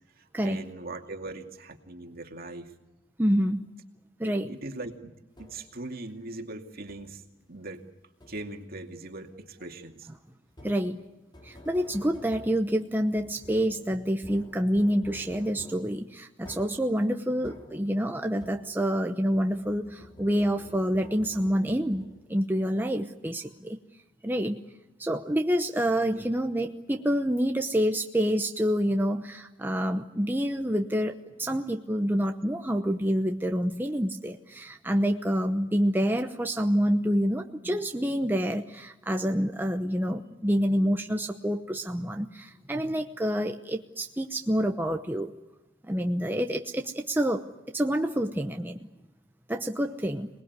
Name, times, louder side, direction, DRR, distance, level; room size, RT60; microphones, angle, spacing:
voice 1, 0.2-2.7 4.3-5.1 5.4-7.2 7.5-7.8 8.3-10.1 26.0-26.3, right 2 dB, 50° right, 4 dB, 2.5 m, -40 dB
voice 2, 3.2-3.7 4.2-4.5 10.6-11.0 11.4-23.8 24.2-24.6 25.0-45.3 45.9-47.4 47.7-48.8 49.5-50.3, equal, 10° right, 4 dB, 0.9 m, -27 dB
sound 1, 5.4-5.9 6.9-7.3 8.2-8.8 10.5-19.0 19.3-22.5, left 1 dB, 25° left, 3.5 m, -50 dB
26.5 x 20.0 x 9.6 m, 0.96 s
head